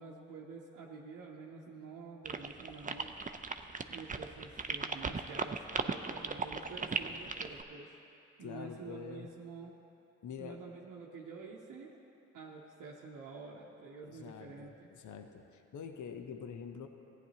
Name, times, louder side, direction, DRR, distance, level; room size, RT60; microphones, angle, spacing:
voice 1, 0.0-3.1 3.9-7.9 8.4-9.8 10.4-12.0 12.3-14.9, right 4 dB, 85° right, -4 dB, 0.7 m, -48 dB
sound 1, 2.3-7.6, right 4 dB, 25° right, 0.5 m, -37 dB
voice 2, 8.4-9.3 10.2-10.6 14.0-16.9, left 6 dB, 70° left, 6 dB, 0.7 m, -46 dB
14.5 x 9.3 x 2.8 m, 2.8 s
supercardioid pair, 40°, 31 cm